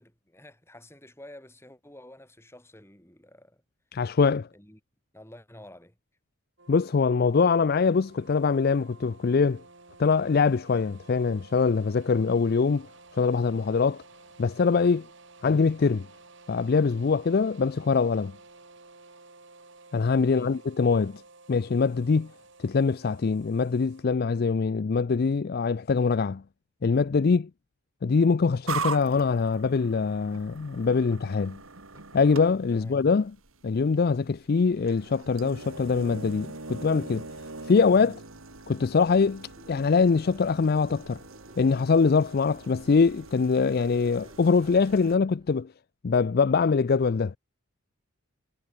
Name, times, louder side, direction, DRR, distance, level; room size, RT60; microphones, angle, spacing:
voice 1, 0.0-3.6 4.5-4.8 5.1-6.0 20.2-20.6 32.7-33.0, left 1 dB, 10° left, 6.1 m, -49 dB
voice 2, 3.9-4.5 6.7-9.6 10.0-12.9 13.1-14.0 14.4-15.1 15.4-16.1 16.5-18.3 19.9-21.2 21.5-22.3 22.6-26.4 26.8-27.5 28.0-31.6 32.1-33.3 33.6-37.2 37.7-38.2 38.7-41.2 41.6-45.7 46.0-47.4, left 5 dB, 45° left, 0.4 m, -23 dB
sound 1, 6.6-24.0, right 3 dB, 60° right, 5.1 m, -53 dB
sound 2, 28.7-45.2, right 4 dB, 75° right, 3.1 m, -41 dB
sound 3, 37.0-45.5, right 1 dB, 20° right, 7.0 m, -60 dB
head